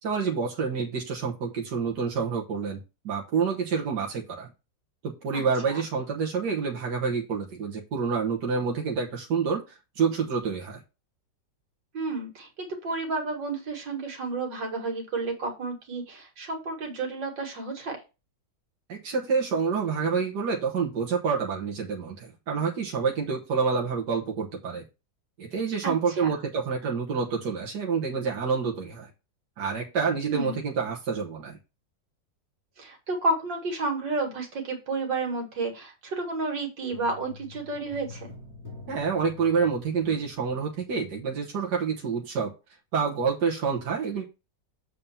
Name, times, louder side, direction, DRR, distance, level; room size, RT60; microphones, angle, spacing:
voice 1, 0.0-2.8 3.0-4.5 5.0-10.8 18.9-24.8 25.4-29.1 29.6-31.6 38.9-42.5 42.9-44.2, right 5 dB, 70° right, -1 dB, 1.9 m, -28 dB
voice 2, 5.3-5.8 11.9-18.0 25.8-26.3 30.2-30.6 32.8-38.3, right 3 dB, 85° right, 2 dB, 2.7 m, -31 dB
sound 1, 36.9-41.4 41.6-41.7, left 4 dB, 10° left, 3.5 m, -47 dB
7.2 x 4.3 x 5.5 m, 0.27 s
omnidirectional pair, 1.9 m